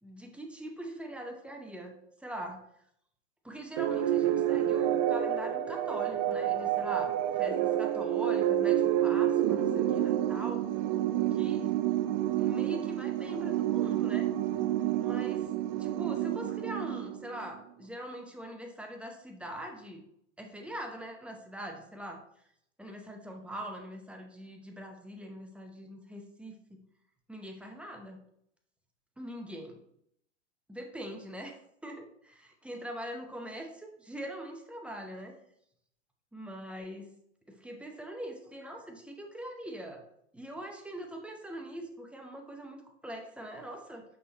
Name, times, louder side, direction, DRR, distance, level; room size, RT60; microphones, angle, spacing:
voice 1, 0.0-2.6 3.4-10.7 11.3-11.7 12.4-14.3 15.0-15.5 15.8-20.0 20.4-22.2 22.8-26.8 27.3-28.2 29.2-29.8 30.7-31.6 31.8-35.3 36.3-37.1 37.5-40.0 40.3-44.0, right 1 dB, 5° right, 2 dB, 0.8 m, -42 dB
sound 1, 3.8-17.5, right 11 dB, 35° right, 0.4 m, -29 dB
6.2 x 5.7 x 2.9 m, 0.71 s
hypercardioid pair, 110°, 37 cm